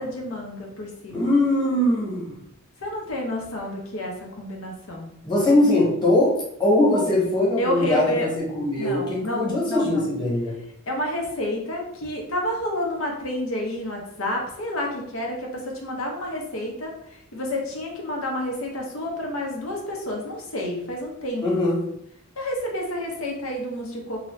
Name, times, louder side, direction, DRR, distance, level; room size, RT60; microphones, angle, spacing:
voice 1, 0.0-1.3 2.8-5.1 6.9-7.1 7.6-8.3 8.8-10.1 10.9-21.4 22.4-24.3, left 1 dB, 80° left, 0 dB, 0.9 m, -30 dB
voice 2, 1.1-2.3 5.2-10.6 21.4-21.8, left 1 dB, 20° left, -6 dB, 1.2 m, -21 dB
2.9 x 2.7 x 3.1 m, 0.75 s
head